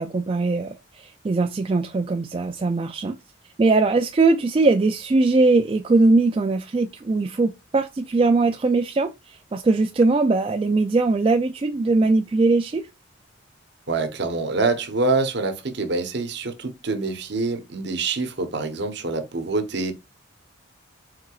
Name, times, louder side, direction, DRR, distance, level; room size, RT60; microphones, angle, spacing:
voice 1, 0.0-3.2 3.6-12.9, right 3 dB, 25° right, 0.3 m, -21 dB
voice 2, 13.9-19.9, right 3 dB, 55° right, 1.0 m, -25 dB
4.7 x 4.4 x 2.4 m
head